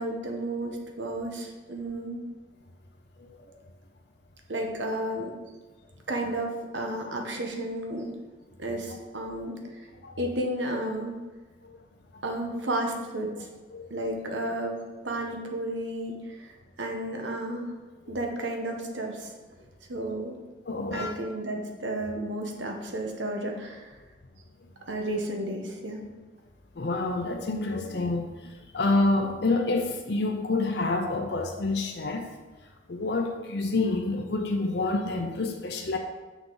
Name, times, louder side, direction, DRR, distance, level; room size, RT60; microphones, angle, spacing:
voice 1, 0.0-2.2 4.5-5.3 6.1-8.1 8.6-9.6 10.2-11.1 12.2-13.5 13.9-14.8 15.0-16.5 16.8-17.7 18.1-19.3 19.9-20.3 20.9-23.9 24.9-26.0, right 1 dB, 90° right, 2 dB, 1.2 m, -32 dB
voice 2, 3.2-3.5 10.0-10.2 11.6-11.8 12.1-12.2 13.3-13.4 13.7-13.9 18.1-18.2 20.7-21.2 26.8-32.3 32.9-36.0, left 2 dB, 70° left, 3 dB, 0.7 m, -28 dB
8.0 x 6.1 x 4.0 m, 1.2 s
head